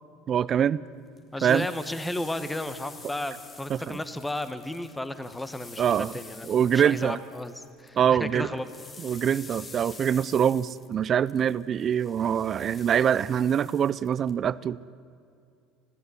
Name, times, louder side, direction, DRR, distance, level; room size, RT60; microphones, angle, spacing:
voice 1, 0.3-0.8 1.4-1.7 3.7-4.0 5.8-6.1 6.5-7.2 8.0-8.5 9.0-14.9, right 8 dB, 45° right, 19 dB, 0.5 m, -24 dB
sound 1, 1.2-8.0 8.2-14.3, left 4 dB, 30° left, 2.3 m, -48 dB
voice 2, 1.3-8.7, left 1 dB, 10° left, 11 dB, 1.3 m, -34 dB
20.0 x 15.0 x 9.9 m, 2.4 s
hypercardioid pair, 75°, 0 cm